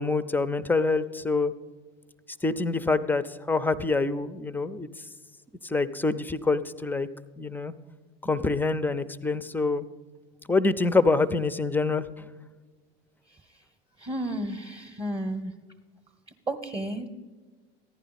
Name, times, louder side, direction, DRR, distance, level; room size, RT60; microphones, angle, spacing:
voice 1, 0.0-1.5 2.4-3.2 3.5-4.9 5.6-7.1 7.4-7.7 8.2-9.9 10.5-12.1, left 3 dB, 5° left, 15 dB, 0.4 m, -25 dB
voice 2, 14.0-15.5 16.5-17.1, right 1 dB, 20° right, 5 dB, 0.8 m, -32 dB
14.5 x 10.5 x 4.1 m, 1.4 s
hypercardioid pair, 85°, 30 cm